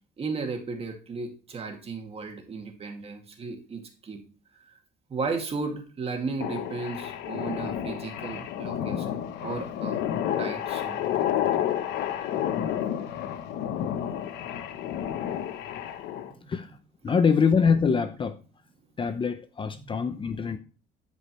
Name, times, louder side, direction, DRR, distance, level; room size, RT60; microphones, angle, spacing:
voice 1, 0.2-4.2 4.7-4.8 5.1-10.0 10.4-11.2 16.2-16.5 19.8-20.6, right 4 dB, 35° right, 2.3 m, -35 dB
sound 1, 6.4-16.3, left 10 dB, 85° left, 1.0 m, -30 dB
voice 2, 17.0-18.4 19.0-20.6, left 6 dB, 30° left, 0.7 m, -24 dB
13.0 x 5.2 x 3.1 m
cardioid pair, 110°, 17 cm